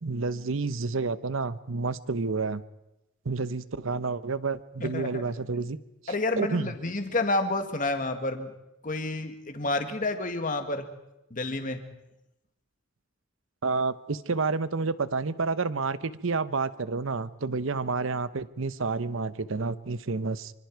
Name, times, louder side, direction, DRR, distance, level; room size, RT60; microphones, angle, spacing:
voice 1, 0.0-2.6 3.2-5.8 6.0-6.7 13.6-20.5, right 4 dB, 70° right, 15 dB, 0.8 m, -29 dB
voice 2, 4.8-5.2 6.1-8.5 8.8-10.8 11.3-11.8, left 2 dB, 40° left, 7 dB, 1.9 m, -29 dB
26.0 x 25.5 x 4.7 m, 0.91 s
head